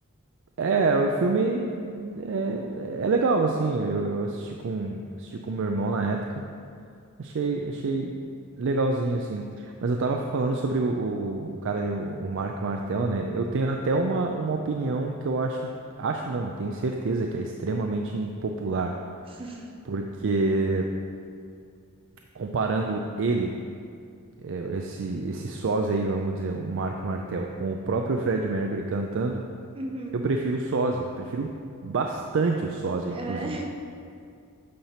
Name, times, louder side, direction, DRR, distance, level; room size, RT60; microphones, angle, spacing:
voice 1, 0.6-6.4 7.2-8.2 8.6-15.7 16.0-19.0 19.9-20.9 22.4-23.5 24.4-29.4 30.1-31.5 31.8-33.6, right 3 dB, 60° right, 2 dB, 0.4 m, -27 dB
voice 2, 19.3-19.7 29.7-30.1 33.1-33.9, right 1 dB, 25° right, 1 dB, 0.7 m, -35 dB
8.5 x 5.7 x 4.4 m, 2.3 s
head